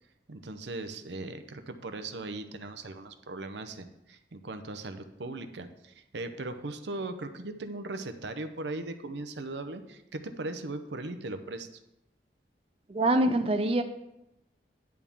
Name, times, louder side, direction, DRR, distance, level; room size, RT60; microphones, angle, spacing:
voice 1, 0.3-11.7, right 2 dB, 80° right, 9 dB, 0.7 m, -38 dB
voice 2, 12.9-13.8, right 1 dB, 35° right, 6 dB, 0.5 m, -24 dB
10.5 x 3.6 x 7.1 m, 0.88 s
head